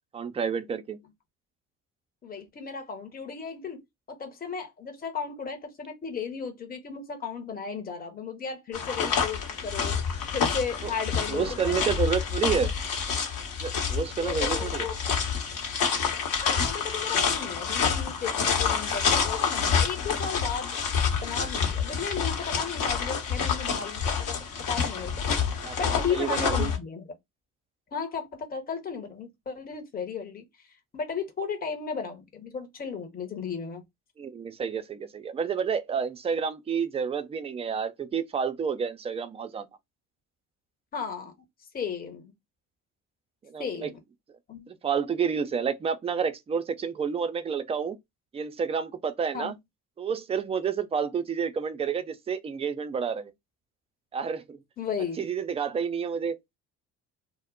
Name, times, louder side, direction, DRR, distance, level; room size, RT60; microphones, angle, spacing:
voice 1, 0.1-1.0 10.8-10.9 11.3-12.7 13.6-14.9 25.6-25.8 26.1-26.7 34.2-39.7 43.4-43.9 44.7-48.0 48.3-49.5 50.0-53.3 54.1-54.6 55.2-56.4, right 6 dB, 15° right, 0.4 m, -29 dB
voice 2, 2.2-3.8 4.1-11.9 14.2-14.9 16.4-20.8 21.2-24.4 24.7-25.4 25.8-27.0 27.9-30.5 30.9-33.8 40.9-41.3 41.7-42.3 43.6-43.9 44.5-44.7 49.3-49.5 54.8-55.3, left 6 dB, 20° left, 0.8 m, -35 dB
sound 1, 8.7-26.8, left 6 dB, 60° left, 1.0 m, -28 dB
2.1 x 2.1 x 3.6 m
hypercardioid pair, 60°, 40 cm